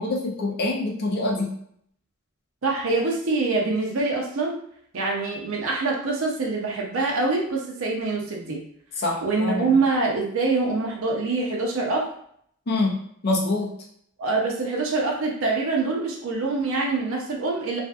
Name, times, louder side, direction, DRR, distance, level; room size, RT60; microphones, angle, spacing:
voice 1, 0.0-1.5 9.0-9.8 12.7-13.0 13.2-13.7, left 2 dB, 50° left, -1 dB, 0.5 m, -25 dB
voice 2, 2.6-4.6 4.9-8.6 9.2-12.1 14.2-17.8, right 3 dB, 85° right, -1 dB, 0.6 m, -25 dB
2.5 x 2.4 x 2.3 m, 0.66 s
head